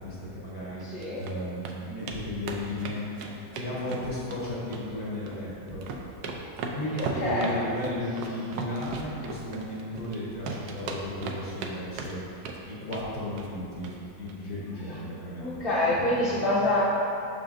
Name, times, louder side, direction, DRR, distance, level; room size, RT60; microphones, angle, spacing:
voice 1, 0.0-3.1 3.5-5.8 6.7-12.4 12.7-13.9 14.2-16.3, left 1 dB, 70° left, -7 dB, 2.0 m, -35 dB
sound 1, 0.8-1.3 1.6-1.8 2.1-2.2 2.5-4.4 4.7-5.4 5.7-10.2 10.5-11.7 12.0-12.6 12.9-13.1 13.4-13.6 13.8-14.0 14.3-14.4, right 4 dB, 85° right, 1.1 m, -36 dB
voice 2, 7.0-7.5 15.4-16.8, left 1 dB, 45° left, -10 dB, 0.9 m, -26 dB
6.8 x 6.1 x 2.5 m, 2.7 s
omnidirectional pair, 1.7 m